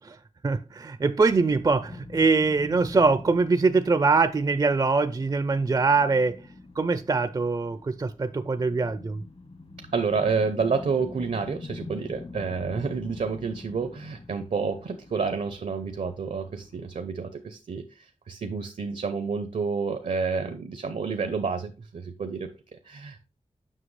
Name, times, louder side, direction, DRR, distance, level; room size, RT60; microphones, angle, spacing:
voice 1, 0.4-6.4 6.8-9.2, right 4 dB, 30° right, 0.4 m, -23 dB
sound 1, 1.5-17.0, left 3 dB, 55° left, 1.1 m, -45 dB
voice 2, 9.9-23.3, right 5 dB, 75° right, 0.7 m, -29 dB
7.5 x 5.7 x 3.2 m
wide cardioid pair, 85°, 13 cm